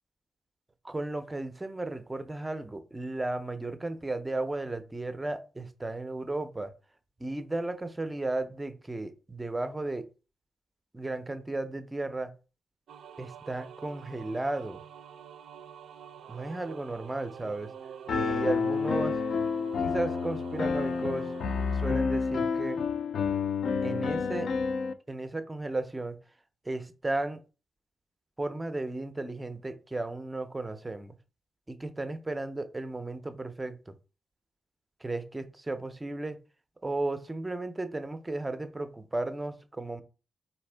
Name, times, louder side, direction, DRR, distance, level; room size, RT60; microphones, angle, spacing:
voice 1, 0.8-6.7 7.2-10.1 10.9-12.3 13.2-14.8 16.3-17.7 18.1-19.2 19.8-21.3 21.7-22.8 23.8-24.5 25.1-26.2 26.7-27.4 28.4-31.2 31.7-33.9 35.0-36.4 36.8-40.0, right 2 dB, 15° right, 10 dB, 0.4 m, -34 dB
sound 1, 12.9-21.9, right 8 dB, 75° right, 0.4 m, -46 dB
Piano, 18.1-24.9, left 5 dB, 60° left, 0.3 m, -29 dB
4.3 x 3.4 x 3.3 m, 0.34 s
wide cardioid pair, 155°, 0 cm